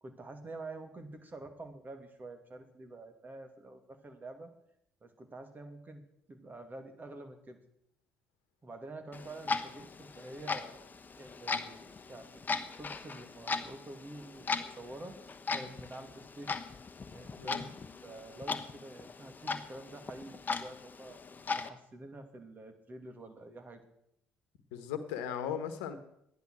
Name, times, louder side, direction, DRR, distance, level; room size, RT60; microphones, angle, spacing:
voice 1, 0.0-4.5 5.0-7.6 8.6-10.8 11.2-15.2 15.5-16.6 17.1-21.2 21.6-23.8, right 2 dB, 35° right, 6 dB, 2.6 m, -48 dB
Clock, 9.1-21.7, left 4 dB, 35° left, 1.1 m, -39 dB
voice 2, 24.7-26.0, left 8 dB, 80° left, 10 dB, 1.3 m, -37 dB
13.5 x 10.5 x 6.3 m, 0.76 s
hypercardioid pair, 50°, 6 cm